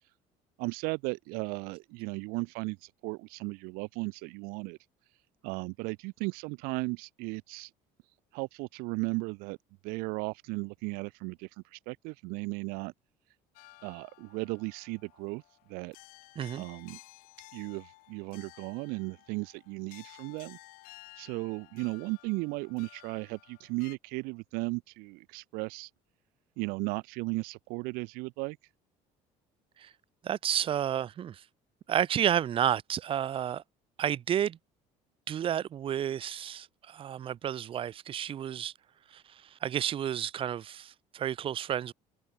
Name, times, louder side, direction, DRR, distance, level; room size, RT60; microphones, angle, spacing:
voice 1, 0.6-4.8 5.4-7.7 8.3-9.6 9.8-12.9 13.8-15.4 15.7-16.0 16.6-17.0 17.5-20.6 21.2-25.9 26.6-28.6, right 28 dB, 80° right, 0.6 m, -36 dB
sound 1, 13.6-24.0, left 23 dB, 75° left, 1.9 m, -55 dB
voice 2, 30.2-31.4 31.9-33.6 34.0-34.6 35.3-38.7 39.1-41.9, right 10 dB, 35° right, 0.7 m, -31 dB
cardioid pair, 125°, 15 cm